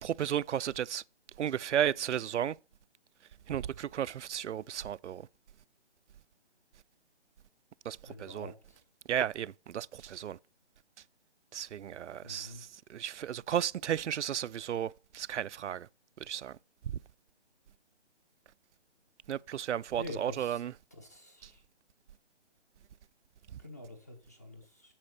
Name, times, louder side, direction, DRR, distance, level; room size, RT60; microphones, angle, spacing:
voice 1, 0.0-1.0 1.4-2.6 3.5-5.3 7.8-8.5 9.1-10.4 11.5-15.9 16.2-16.6 16.8-17.0 19.3-20.7 21.4-21.5 23.5-23.6, right 10 dB, 90° right, 0.5 m, -34 dB
voice 2, 8.0-8.8 12.2-12.6 19.9-20.6 20.9-21.6 23.6-24.9, left 1 dB, 15° left, 0.8 m, -46 dB
8.7 x 6.8 x 6.6 m
hypercardioid pair, 175°, 34 cm